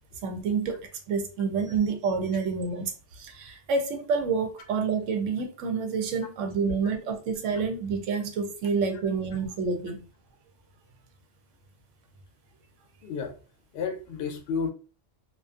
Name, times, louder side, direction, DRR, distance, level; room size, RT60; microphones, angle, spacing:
voice 1, 0.2-0.8 1.1-10.0, right 5 dB, 85° right, 0.9 m, -28 dB
voice 2, 13.0-13.4 13.7-14.7, left 5 dB, 65° left, 0.8 m, -31 dB
2.4 x 2.4 x 2.4 m
omnidirectional pair, 1.2 m